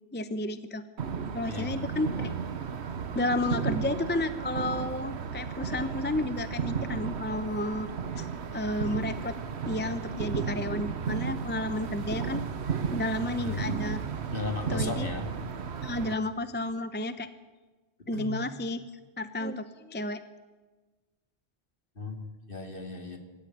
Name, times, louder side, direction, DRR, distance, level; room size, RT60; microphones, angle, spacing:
voice 1, 0.1-0.8 1.3-2.3 3.1-7.9 8.2-8.3 8.5-9.3 9.7-12.4 12.9-14.0 14.7-15.1 15.8-17.3 18.1-18.8 19.2-20.2, left 1 dB, 10° left, 11 dB, 0.7 m, -31 dB
sound 1, 1.0-16.1, right 6 dB, 75° right, 1.3 m, -34 dB
voice 2, 1.5-2.0 13.4-13.8 14.3-15.4 18.1-18.3 21.9-23.2, left 3 dB, 50° left, 4 dB, 2.8 m, -36 dB
24.5 x 13.0 x 9.4 m, 1.3 s
omnidirectional pair, 1.1 m